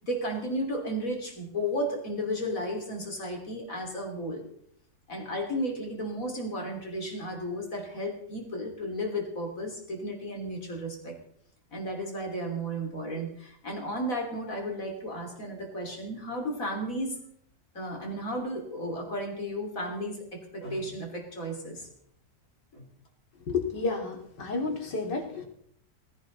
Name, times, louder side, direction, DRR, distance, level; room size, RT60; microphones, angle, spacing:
voice 1, 0.0-4.4 5.1-11.2 11.7-17.2 17.8-21.9 22.7-22.9, equal, 50° left, 2 dB, 3.6 m, -33 dB
voice 2, 23.5-25.5, left 4 dB, 75° left, 2 dB, 3.4 m, -31 dB
18.5 x 16.5 x 4.0 m, 0.70 s
omnidirectional pair, 1.9 m